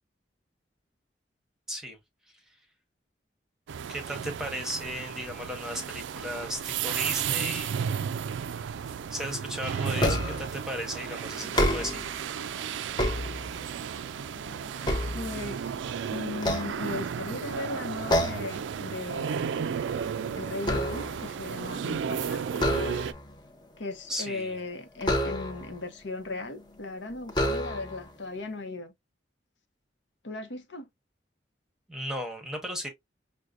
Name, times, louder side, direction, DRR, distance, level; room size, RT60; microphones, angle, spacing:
voice 1, 1.7-2.0 3.9-7.8 9.1-12.2 24.1-24.6 31.9-32.9, equal, 5° right, 0.9 m, -35 dB
sound 1, 3.7-23.1, right 7 dB, 90° right, 0.3 m, -34 dB
sound 2, 10.0-10.6 11.4-12.2 12.7-13.8 14.3-15.8 16.3-17.3 18.1-18.6 19.0-19.2 19.6-21.3 22.5-23.3 25.0-25.8 26.6-26.7 27.3-28.1, left 1 dB, 25° left, 0.7 m, -29 dB
voice 2, 15.1-15.8 16.1-19.7 20.4-22.4 23.8-28.9 30.2-30.9, left 2 dB, 80° left, 0.8 m, -37 dB
6.2 x 2.2 x 2.4 m
head